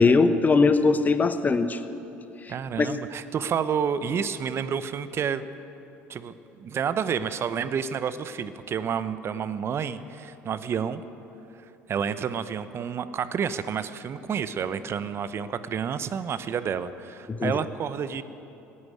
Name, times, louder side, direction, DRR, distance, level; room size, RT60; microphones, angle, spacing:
voice 1, 0.0-1.8 2.8-2.9 17.3-17.6, left 4 dB, 30° left, 11 dB, 1.0 m, -20 dB
voice 2, 2.5-5.5 6.1-11.0 11.9-18.2, right 7 dB, 45° right, 13 dB, 0.8 m, -29 dB
15.5 x 9.7 x 9.4 m, 2.9 s
hypercardioid pair, 65°, 6 cm